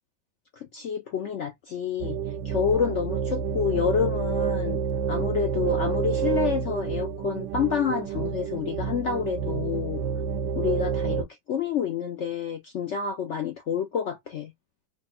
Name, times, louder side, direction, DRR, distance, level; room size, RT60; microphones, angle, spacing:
voice 1, 0.6-2.2 2.4-4.8 5.1-10.0 10.5-14.5, left 7 dB, 70° left, 0.6 m, -28 dB
sound 1, 2.0-11.2, right 7 dB, 80° right, 1.3 m, -29 dB
3.2 x 2.4 x 4.1 m
omnidirectional pair, 1.9 m